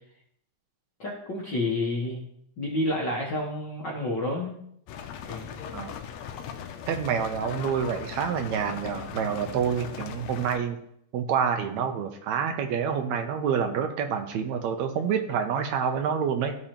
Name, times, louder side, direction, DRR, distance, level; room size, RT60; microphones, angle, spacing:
voice 1, 1.0-2.3 2.6-4.6 5.2-5.5, left 1 dB, 55° left, -3 dB, 1.2 m, -29 dB
sound 1, 4.9-10.6, left 8 dB, 75° left, 1.7 m, -39 dB
voice 2, 6.9-10.8 11.1-16.6, right 7 dB, 75° right, 5 dB, 1.9 m, -27 dB
14.0 x 5.0 x 3.0 m, 0.71 s
omnidirectional pair, 3.5 m